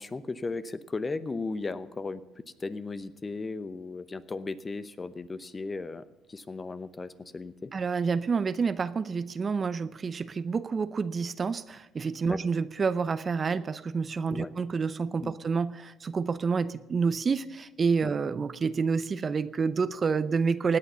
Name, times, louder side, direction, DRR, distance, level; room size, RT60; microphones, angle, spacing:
voice 1, 0.0-7.7 12.3-12.4 14.3-14.5 15.2-15.3 18.0-18.1, left 3 dB, 25° left, 14 dB, 0.8 m, -36 dB
voice 2, 7.7-20.8, right 5 dB, 35° right, 14 dB, 0.7 m, -28 dB
17.0 x 9.0 x 6.9 m, 0.96 s
hypercardioid pair, 65°, 0 cm